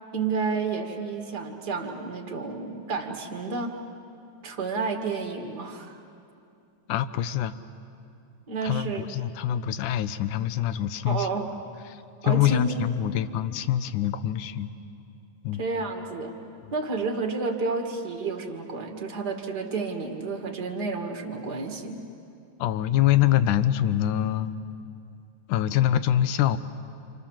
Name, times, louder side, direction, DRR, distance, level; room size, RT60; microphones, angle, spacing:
voice 1, 0.1-3.8 4.4-6.0 8.5-9.1 11.1-11.5 12.2-12.9 15.6-16.4 16.7-22.0, right 4 dB, 35° right, 3 dB, 2.1 m, -30 dB
voice 2, 6.9-7.5 8.6-11.3 12.2-14.7 15.4-15.6 22.6-24.5 25.5-26.6, left 11 dB, 75° left, 13 dB, 2.2 m, -24 dB
29.0 x 27.5 x 7.3 m, 2.6 s
omnidirectional pair, 3.9 m